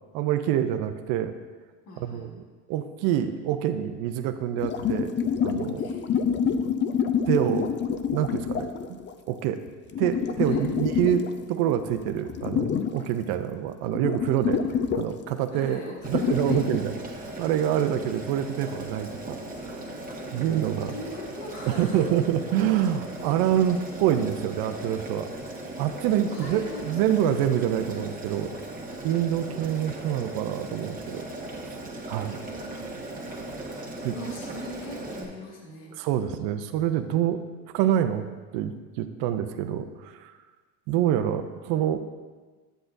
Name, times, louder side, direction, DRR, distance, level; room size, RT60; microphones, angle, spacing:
voice 1, 0.1-1.3 2.0-2.4 2.7-5.1 5.4-5.9 7.3-7.7 8.1-9.0 9.3-9.6 10.0-14.6 15.0-19.9 20.3-20.9 21.7-25.3 25.8-28.6 29.0-31.3 31.7-31.8 32.1-32.4 34.0-34.1 36.0-37.4 37.7-38.3 38.5-40.3 40.9-42.0, right 10 dB, 55° right, 8 dB, 0.6 m, -26 dB
voice 2, 1.8-2.3 5.8-6.1 10.4-10.6 14.3-14.8 15.5-16.6 20.8-22.1 26.3-27.4 32.1-32.9 34.1-35.9, left 1 dB, 85° left, -3 dB, 1.9 m, -41 dB
sound 1, 4.6-9.1 9.9-11.5 11.8-13.0 13.4-13.5 13.9-15.3 16.1-16.8, left 7 dB, 25° left, 0.4 m, -27 dB
Boiling, 16.0-35.2, right 1 dB, 20° right, 1.5 m, -38 dB
8.9 x 7.7 x 2.6 m, 1.4 s
hypercardioid pair, 90°, 45 cm